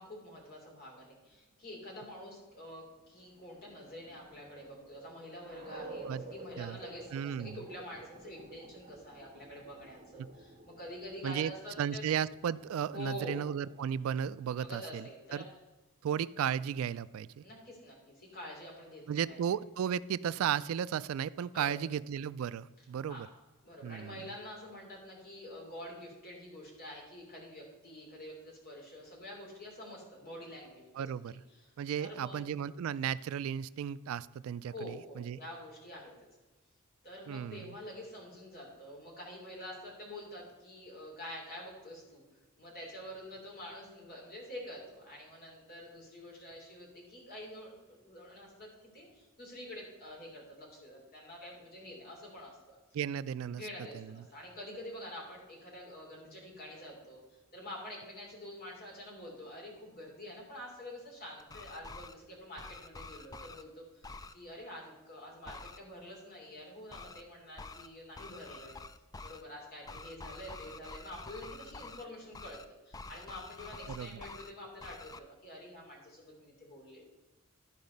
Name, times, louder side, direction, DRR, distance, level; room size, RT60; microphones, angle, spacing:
voice 1, 0.0-12.0 12.9-13.5 14.6-15.5 17.4-19.4 21.5-21.7 23.1-23.3 23.6-31.1 31.5-31.7 32.0-32.5 34.7-36.3 37.0-42.2 42.6-52.8 53.5-57.2 57.5-64.1 64.3-68.8 69.2-77.0, left 1 dB, 45° left, -1 dB, 3.1 m, -47 dB
sound 1, 3.0-14.4, right 2 dB, 35° right, 1.4 m, -52 dB
voice 2, 7.1-7.6 11.2-11.5 11.8-15.1 15.3-15.4 16.0-17.4 19.1-23.3 23.8-24.1 30.9-31.3 31.8-35.4 37.3-37.6 52.9-53.7 53.9-54.2 73.9-74.2, right 8 dB, 75° right, 17 dB, 0.3 m, -34 dB
sound 2, 61.4-62.1 62.6-63.6 64.0-64.3 65.5-65.8 66.9-67.2 67.6-67.9 68.2-69.4 69.9-72.0 72.3-72.6 72.9-74.5 74.8-75.2, left 3 dB, 15° left, 0.3 m, -47 dB
12.0 x 4.8 x 5.3 m, 1.1 s
head